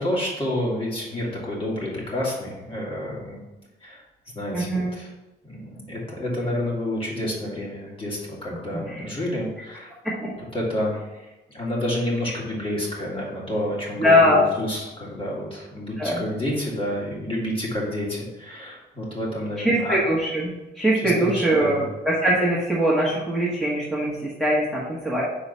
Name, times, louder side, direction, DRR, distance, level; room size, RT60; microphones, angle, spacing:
voice 1, 0.0-3.4 3.8-4.0 4.3-5.1 5.4-9.9 10.5-11.3 11.5-20.0 20.9-21.8, left 1 dB, 30° left, -4 dB, 2.2 m, -29 dB
voice 2, 4.5-4.9 8.7-9.0 10.0-10.3 14.0-14.4 16.0-16.2 19.6-25.2, equal, ahead, -6 dB, 1.5 m, -22 dB
4.8 x 3.8 x 5.5 m, 1.1 s
cardioid pair, 90°, 18 cm